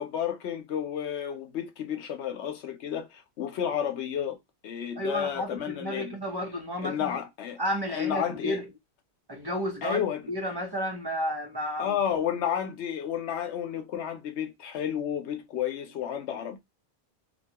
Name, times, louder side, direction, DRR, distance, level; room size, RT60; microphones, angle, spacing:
voice 1, 0.0-4.4 4.6-6.2 6.8-7.6 7.9-8.6 9.8-10.2 11.8-16.6, left 9 dB, 80° left, 0.9 m, -31 dB
voice 2, 4.9-7.2 7.6-8.7 9.3-12.0, equal, 25° right, 0.6 m, -32 dB
2.8 x 2.3 x 2.7 m
omnidirectional pair, 1.1 m